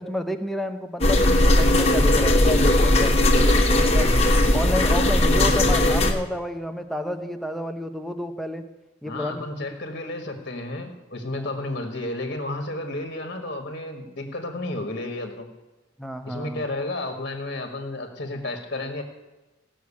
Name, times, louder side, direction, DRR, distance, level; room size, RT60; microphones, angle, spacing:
voice 1, 0.0-4.1 4.5-8.6 9.0-9.4 16.0-16.7, equal, ahead, 5 dB, 0.8 m, -30 dB
sound 1, 1.0-6.1, left 1 dB, 30° left, 1.4 m, -18 dB
voice 2, 9.0-15.5 16.2-19.0, left 2 dB, 50° left, 5 dB, 1.6 m, -32 dB
16.5 x 6.3 x 8.5 m, 1.1 s
head